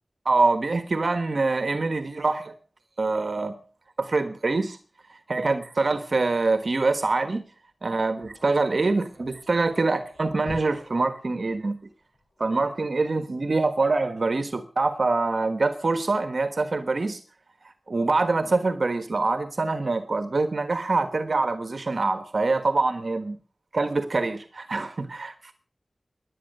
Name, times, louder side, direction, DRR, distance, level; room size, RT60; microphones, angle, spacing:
voice 1, 0.3-2.5 3.0-3.5 4.0-4.8 5.1-7.5 7.8-11.8 12.4-17.2 17.9-23.4 23.7-25.5, right 3 dB, 70° right, 1.4 m, -25 dB
sound 1, 7.5-12.4, left 2 dB, 75° left, 5.0 m, -49 dB
17.0 x 11.0 x 6.7 m
wide cardioid pair, 60°, 0 cm